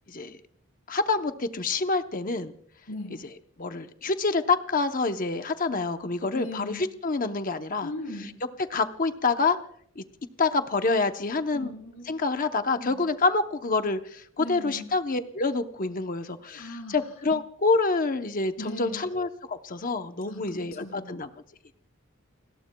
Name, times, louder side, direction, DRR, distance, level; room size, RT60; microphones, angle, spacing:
voice 1, 0.1-0.4 0.9-2.5 3.6-7.9 8.2-8.3 8.7-9.6 10.0-10.1 10.4-11.7 12.1-21.3, left 3 dB, 40° left, 8 dB, 0.8 m, -27 dB
voice 2, 2.9-3.2 6.3-6.8 7.8-8.4 11.5-12.1 12.7-13.0 14.4-14.9 16.5-17.0 18.6-19.0 20.3-21.2, left 1 dB, 80° left, 2 dB, 4.0 m, -38 dB
29.5 x 21.0 x 2.3 m, 0.65 s
head